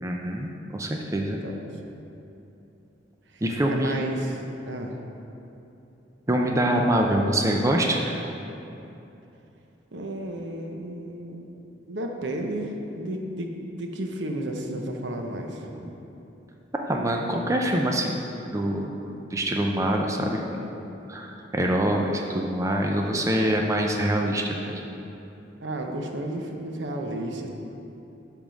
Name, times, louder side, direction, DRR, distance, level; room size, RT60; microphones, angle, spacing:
voice 1, 0.0-1.4 3.4-4.0 6.3-8.2 15.8-15.9 16.8-19.0 19.3-20.7 21.1-24.8, right 1 dB, 15° right, 1 dB, 0.5 m, -25 dB
voice 2, 1.2-1.6 3.3-3.4 3.7-5.0 9.9-11.5 11.9-15.7 23.3-23.6 25.6-27.5, right 1 dB, 70° right, 2 dB, 0.8 m, -33 dB
10.0 x 3.6 x 6.3 m, 2.9 s
head